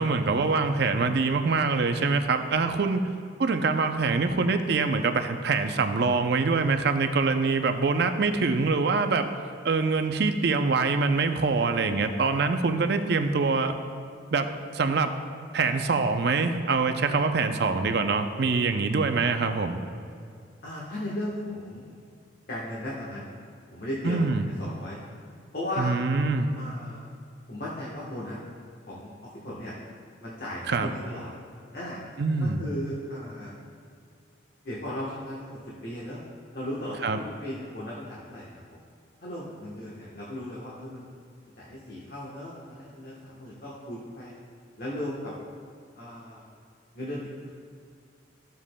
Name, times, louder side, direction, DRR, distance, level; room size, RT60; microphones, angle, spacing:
voice 1, 0.0-3.0 3.4-9.3 9.6-13.8 14.3-15.1 15.5-19.8 24.0-24.5 25.8-26.5 30.7-30.9 32.2-32.6 37.0-37.2, right 4 dB, 55° right, 7 dB, 0.5 m, -24 dB
voice 2, 20.6-21.9 22.5-23.3 23.7-24.3 24.6-25.0 25.5-25.9 26.5-27.1 27.5-28.4 28.8-29.8 30.2-31.3 31.7-32.0 32.4-33.5 34.6-36.2 36.5-38.8 39.2-41.1 41.6-44.3 44.8-45.3 45.9-46.4 46.9-47.5, left 1 dB, 55° left, -6 dB, 1.2 m, -36 dB
14.0 x 7.3 x 2.2 m, 2.3 s
head